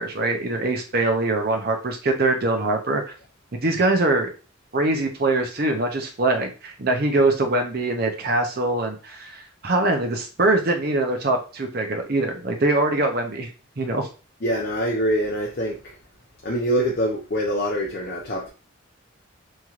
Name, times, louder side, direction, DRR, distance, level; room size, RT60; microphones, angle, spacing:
voice 1, 0.0-3.1 3.6-4.3 4.7-13.5 13.8-14.1, right 2 dB, 45° right, 4 dB, 0.6 m, -23 dB
voice 2, 14.4-15.7 16.4-18.5, equal, 45° left, -1 dB, 0.5 m, -24 dB
3.1 x 2.8 x 2.4 m, 0.33 s
head